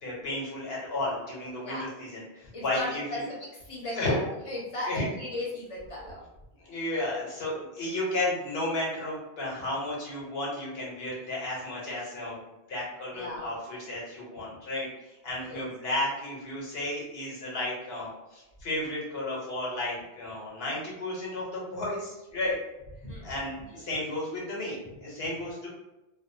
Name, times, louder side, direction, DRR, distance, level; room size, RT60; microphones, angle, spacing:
voice 1, 0.0-3.2 3.8-4.2 4.8-5.1 6.6-12.4 12.7-22.6 23.2-25.7, left 1 dB, 75° left, -4 dB, 1.0 m, -33 dB
voice 2, 2.5-3.2 3.7-6.2 13.1-13.5 15.4-15.7 23.0-23.4, left 1 dB, 35° left, -4 dB, 0.7 m, -36 dB
2.5 x 2.0 x 2.6 m, 0.99 s
omnidirectional pair, 1.0 m